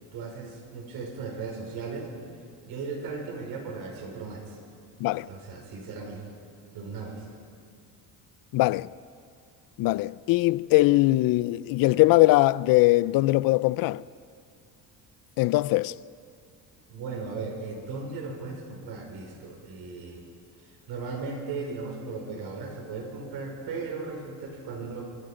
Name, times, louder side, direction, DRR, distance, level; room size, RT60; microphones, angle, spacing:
voice 1, 0.1-2.1 2.6-4.6 5.3-6.3 6.7-7.2 16.9-20.2 20.9-25.1, right 4 dB, 75° right, 5.3 m, -37 dB
voice 2, 8.5-8.9 9.8-14.0 15.4-15.9, left 19 dB, 65° left, 0.5 m, -21 dB
26.0 x 24.5 x 5.1 m
cardioid pair, 155°, 37 cm